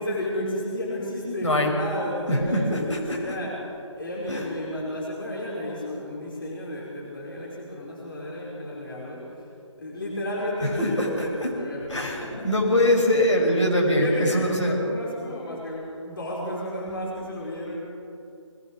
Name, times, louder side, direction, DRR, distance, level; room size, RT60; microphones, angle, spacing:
voice 1, 0.0-9.4 9.8-12.5 13.8-17.8, left 1 dB, 45° left, -5 dB, 5.3 m, -32 dB
voice 2, 1.4-1.7 2.3-3.2 4.3-4.5 10.6-11.5 11.9-14.8, left 1 dB, 70° left, -1 dB, 6.5 m, -23 dB
22.5 x 20.0 x 6.6 m, 2.5 s
figure-of-eight pair, 155°, 16 cm